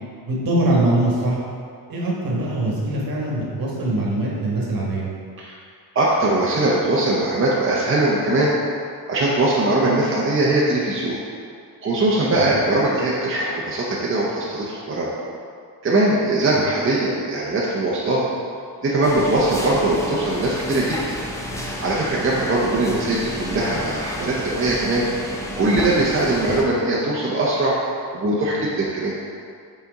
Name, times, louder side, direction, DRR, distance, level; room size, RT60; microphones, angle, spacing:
voice 1, 0.3-1.4 1.9-5.1 12.4-12.5, right 1 dB, 55° right, -4 dB, 1.3 m, -22 dB
voice 2, 5.9-8.6 9.1-11.2 11.8-15.1 15.8-18.2 18.8-21.1 21.6-25.1 25.5-27.8 28.1-29.1, right 2 dB, 30° right, -5 dB, 0.7 m, -21 dB
sound 1, 19.0-26.6, equal, 10° left, 0.5 m, -31 dB
5.9 x 4.2 x 4.1 m, 2.3 s
wide cardioid pair, 155°, 40 cm